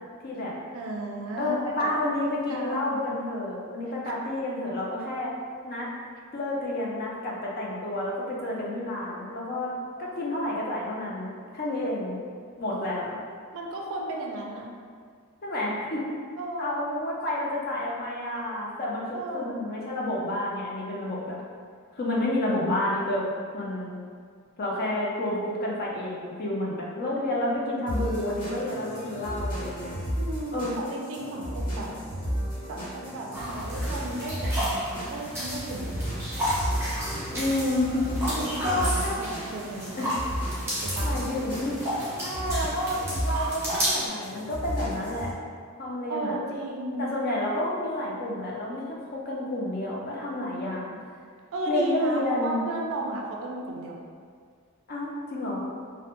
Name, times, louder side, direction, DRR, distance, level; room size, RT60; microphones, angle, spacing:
voice 1, 0.2-0.5 1.4-5.3 5.6-5.9 6.3-9.7 10.0-12.2 12.6-13.2 15.4-16.2 16.6-21.4 22.0-23.3 23.5-24.0 24.6-30.0 30.5-30.8 37.3-38.3 38.6-39.1 40.0-40.2 41.0-45.3 45.8-46.3 47.0-50.9 51.7-52.6 54.9-55.7, left 1 dB, 45° left, -4 dB, 0.4 m, -30 dB
voice 2, 0.7-1.9 2.2-3.2 13.5-14.7 16.4-16.8 19.1-19.6 30.2-31.9 32.7-36.1 38.3-40.2 40.8-41.1 46.1-47.1 51.5-54.0, right 1 dB, 60° right, -1 dB, 0.3 m, -34 dB
sound 1, 27.9-45.3, equal, 80° left, 1.0 m, -34 dB
sound 2, 33.3-44.1, equal, 10° right, 0.6 m, -32 dB
2.1 x 2.1 x 2.9 m, 2.1 s
head